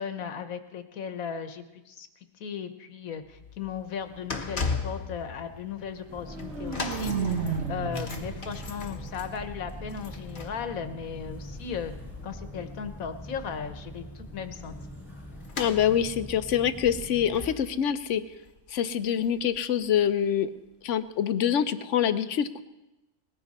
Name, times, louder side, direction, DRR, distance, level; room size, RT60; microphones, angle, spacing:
voice 1, 0.0-2.1 2.4-11.9 12.2-14.7, left 7 dB, 85° left, 9 dB, 1.5 m, -36 dB
sound 1, 3.2-19.6 19.8-20.1 20.9-21.0, left 4 dB, 40° left, 1.3 m, -40 dB
sound 2, 6.1-17.5, equal, ahead, 5.2 m, -43 dB
sound 3, 6.1-10.1, right 5 dB, 55° right, 1.5 m, -34 dB
voice 2, 15.6-18.2 18.7-20.5 20.8-22.6, left 9 dB, 65° left, 12 dB, 1.0 m, -25 dB
19.5 x 15.0 x 4.2 m, 1.0 s
omnidirectional pair, 1.4 m